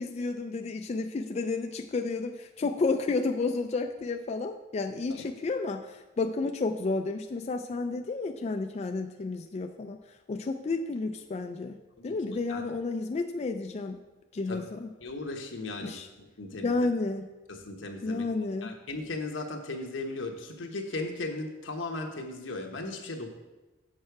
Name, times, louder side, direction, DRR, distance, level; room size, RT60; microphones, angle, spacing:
voice 1, 0.0-10.0 10.3-11.8 12.0-14.0 14.3-14.9 15.8-16.1 16.6-17.3 18.0-18.8, left 3 dB, 35° left, 5 dB, 0.3 m, -31 dB
voice 2, 15.0-16.8 17.5-18.2 18.6-23.3, left 2 dB, 85° left, 3 dB, 1.1 m, -37 dB
7.4 x 6.4 x 4.7 m, 1.1 s
head